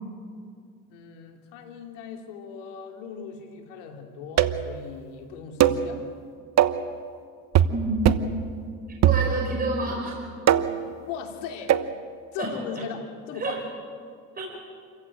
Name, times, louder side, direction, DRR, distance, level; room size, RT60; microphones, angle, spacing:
voice 1, 0.9-6.0 11.0-11.8 12.3-13.6, left 6 dB, 85° left, 3 dB, 3.3 m, -38 dB
sound 1, 4.4-4.7 5.6-5.9 6.6-6.9 7.5-7.8 8.1-8.4 9.0-9.6 10.5-10.9 11.7-11.9, right 10 dB, 45° right, 1.1 m, -21 dB
voice 2, 7.7-8.2 9.0-10.2 12.4-12.6 13.4-13.6 14.4-14.5, right 2 dB, 25° right, -1 dB, 5.0 m, -28 dB
28.0 x 15.0 x 8.9 m, 2.2 s
supercardioid pair, 100°, 36 cm